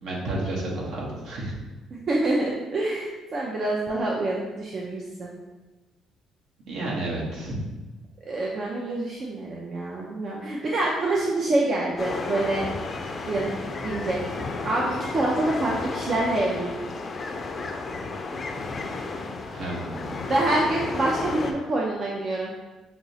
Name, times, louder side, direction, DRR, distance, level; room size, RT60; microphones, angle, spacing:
voice 1, 0.0-1.5 6.7-7.5 19.5-20.3, right 1 dB, 70° right, -3 dB, 1.0 m, -31 dB
voice 2, 1.9-5.3 8.3-12.7 13.3-13.5 13.8-14.2 14.6-16.8 20.3-22.5, right 2 dB, 50° right, -3 dB, 0.5 m, -26 dB
sound 1, 12.0-21.5, left 3 dB, 40° left, 0.4 m, -33 dB
5.9 x 2.0 x 2.7 m, 1.2 s
cardioid pair, 85°, 0 cm